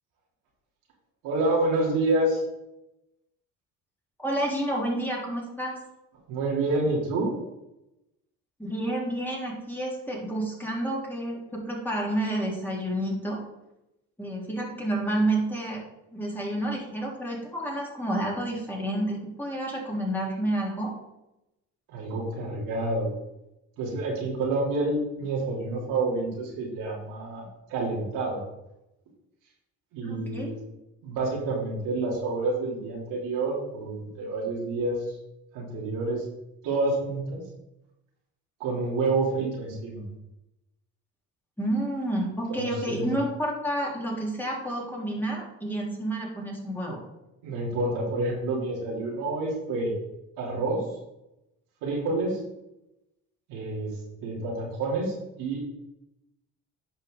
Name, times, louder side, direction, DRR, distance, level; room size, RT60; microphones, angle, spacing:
voice 1, 1.2-2.4 6.3-7.3 21.9-23.1 23.8-28.4 29.9-30.6 31.0-35.2 35.5-36.2 36.6-37.4 38.6-40.0 42.5-43.1 47.4-49.9 50.4-50.8 51.8-52.4 53.5-53.9 54.2-55.6, right 2 dB, 90° right, -4 dB, 3.3 m, -28 dB
voice 2, 4.2-5.7 8.6-13.4 14.2-15.8 16.1-20.9 30.0-30.5 41.6-47.0, right 1 dB, 5° left, -4 dB, 3.5 m, -29 dB
10.5 x 5.9 x 3.9 m, 0.90 s
cardioid pair, 85°, 32 cm